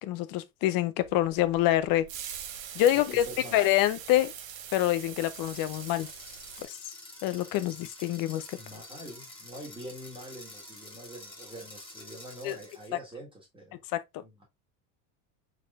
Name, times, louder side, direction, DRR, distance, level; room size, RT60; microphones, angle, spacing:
voice 1, 0.0-2.1 2.7-3.2 3.5-4.3 4.7-6.1 6.6-6.7 7.2-8.6 12.4-12.6 13.9-14.2, left 14 dB, 50° left, 0.6 m, -26 dB
sound 1, 1.0-6.6, right 9 dB, 75° right, 1.2 m, -43 dB
voice 2, 2.9-3.7 7.7-7.8 8.5-13.8 14.2-14.4, equal, 10° right, 1.6 m, -45 dB
sound 2, 5.2-13.0, left 1 dB, 10° left, 1.7 m, -48 dB
4.4 x 4.2 x 2.4 m
cardioid pair, 135°, 43 cm